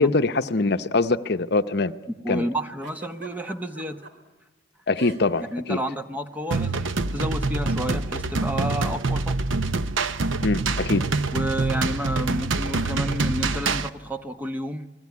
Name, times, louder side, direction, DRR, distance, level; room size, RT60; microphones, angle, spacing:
voice 1, 0.0-1.9 2.3-2.4 4.9-5.8 10.4-11.0, left 3 dB, 55° left, 0.8 m, -23 dB
voice 2, 2.2-4.0 5.5-9.4 11.3-14.9, equal, 10° right, 1.1 m, -30 dB
Giggle, 2.8-4.1 4.9-5.5 5.7-6.0 6.9-7.1, right 1 dB, 65° right, 3.3 m, -42 dB
sound 1, 6.5-13.9, right 3 dB, 85° right, 0.8 m, -25 dB
29.0 x 20.5 x 9.6 m
head